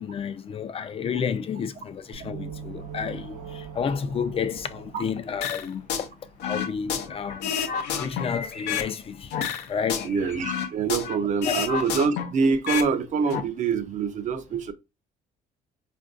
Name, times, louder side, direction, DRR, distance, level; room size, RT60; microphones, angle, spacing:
voice 1, 0.0-7.6 7.9-10.1 11.5-11.6, left 6 dB, 35° left, 0.4 m, -31 dB
sound 1, 2.1-5.9, right 7 dB, 80° right, 0.8 m, -41 dB
sound 2, 2.7-11.1, left 4 dB, 55° left, 0.8 m, -47 dB
sound 3, 5.4-6.1 6.4-8.9 9.3-11.2 11.4-12.9 13.2-13.4, left 8 dB, 85° left, 0.5 m, -29 dB
voice 2, 10.0-14.7, right 5 dB, 45° right, 0.5 m, -25 dB
4.4 x 2.5 x 2.4 m
cardioid pair, 110°, 17 cm